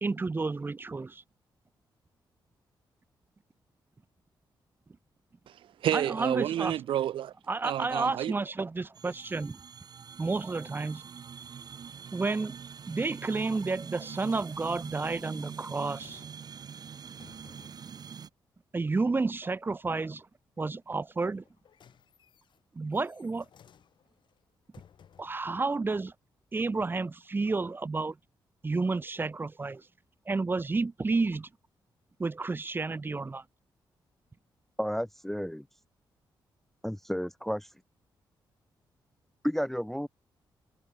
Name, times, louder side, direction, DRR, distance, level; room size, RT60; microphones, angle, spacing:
voice 1, 0.0-1.2 5.9-6.7 7.5-9.6 10.2-11.0 12.1-12.5 12.9-16.2 18.7-20.3 20.6-21.4 22.7-23.4 25.2-26.1 26.5-28.1 28.6-29.8 30.3-31.5 32.2-33.4, right 3 dB, 25° right, 1.3 m, -31 dB
voice 2, 5.5-7.3 7.6-8.3, right 11 dB, 90° right, 1.2 m, -30 dB
sound 1, 9.0-18.3, right 7 dB, 50° right, 1.4 m, -44 dB
sound 2, 13.9-17.9 21.3-25.5 26.2-26.3, left 8 dB, 65° left, 5.9 m, -60 dB
voice 3, 34.8-35.7 36.8-37.7 39.4-40.1, equal, 5° left, 0.5 m, -32 dB
cardioid pair, 105°, 8 cm